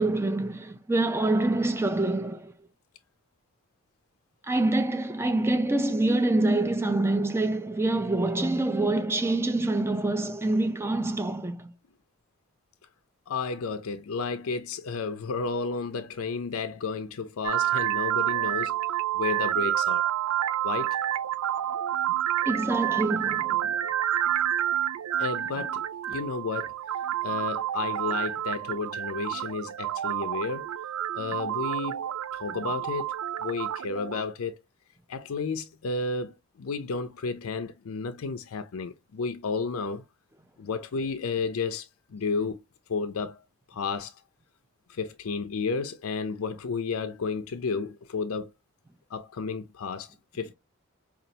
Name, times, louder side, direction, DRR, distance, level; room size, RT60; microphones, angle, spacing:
voice 1, 0.0-2.5 4.5-11.7 22.5-23.7, right 2 dB, 10° right, 0.4 m, -26 dB
voice 2, 13.3-18.8 19.1-20.1 20.6-21.0 25.2-26.8 27.2-30.7 31.1-33.1 33.4-34.6 35.1-40.0 40.6-42.6 42.9-44.2 44.9-48.5 49.1-50.5, left 4 dB, 75° left, 0.5 m, -32 dB
sound 1, 17.4-34.2, right 11 dB, 90° right, 0.4 m, -29 dB
5.2 x 2.4 x 2.7 m
head